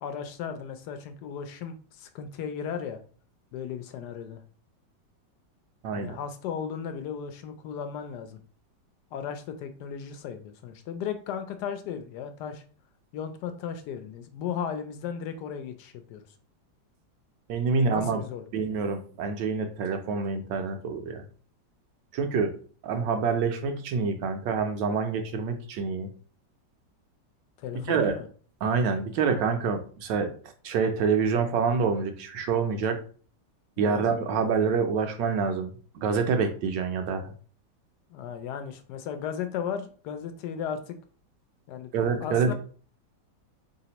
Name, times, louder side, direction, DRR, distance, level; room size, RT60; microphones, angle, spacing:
voice 1, 0.0-3.0 3.5-4.4 5.9-8.4 9.1-12.6 13.1-16.3 17.7-18.4 27.6-28.3 33.8-34.0 38.1-41.0 41.7-41.9 42.2-42.5, left 7 dB, 75° left, 8 dB, 1.1 m, -35 dB
voice 2, 5.8-6.2 17.5-18.2 18.5-21.2 22.1-22.5 22.8-26.1 27.9-28.1 28.6-30.3 30.6-33.0 33.8-35.7 35.9-37.3 41.9-42.5, right 5 dB, 85° right, 6 dB, 1.4 m, -26 dB
4.0 x 3.4 x 2.8 m, 0.42 s
omnidirectional pair, 1.9 m